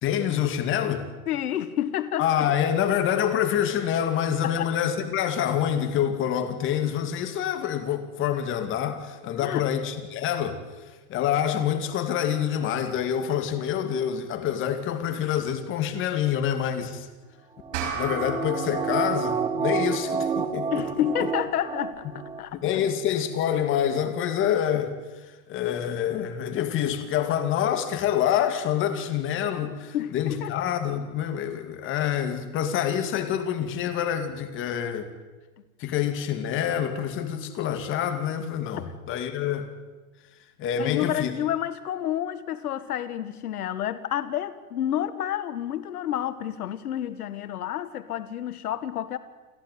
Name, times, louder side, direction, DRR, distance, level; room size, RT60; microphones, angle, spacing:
voice 1, 0.0-1.1 2.2-10.6 11.1-17.1 17.7-21.3 22.5-24.9 25.3-35.1 35.8-39.7 40.6-41.3, left 9 dB, 25° left, 2.4 m, -26 dB
voice 2, 1.3-2.5 4.4-4.7 9.4-9.7 20.7-22.9 29.9-30.5 38.7-38.9 40.7-49.2, left 11 dB, 85° left, 1.5 m, -30 dB
sound 1, 17.6-22.4 22.7-22.8, right 6 dB, 10° right, 0.9 m, -29 dB
sound 2, 17.7-22.5, right 3 dB, 55° right, 5.6 m, -37 dB
29.0 x 12.0 x 9.3 m
supercardioid pair, 150°, 44 cm